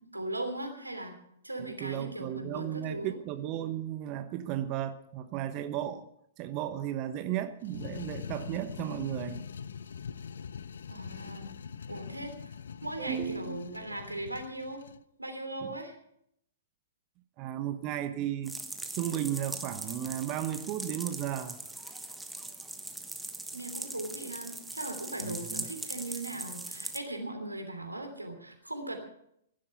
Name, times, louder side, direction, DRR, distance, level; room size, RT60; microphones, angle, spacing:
voice 1, 0.1-1.1 1.4-3.2 10.9-11.5 11.9-12.5 12.8-14.8 15.2-15.9 23.5-29.0, right 1 dB, 85° right, 3.1 m, -38 dB
voice 2, 1.6-6.1 6.4-9.4 13.0-13.6 15.6-15.8 17.4-18.6 18.9-21.6 25.2-25.7, right 11 dB, 35° right, 1.0 m, -34 dB
sound 1, 7.6-15.0, left 6 dB, 65° left, 0.5 m, -43 dB
sound 2, 18.4-27.0, right 2 dB, 5° right, 1.4 m, -41 dB
16.0 x 11.5 x 5.8 m
figure-of-eight pair, 110°, 0 cm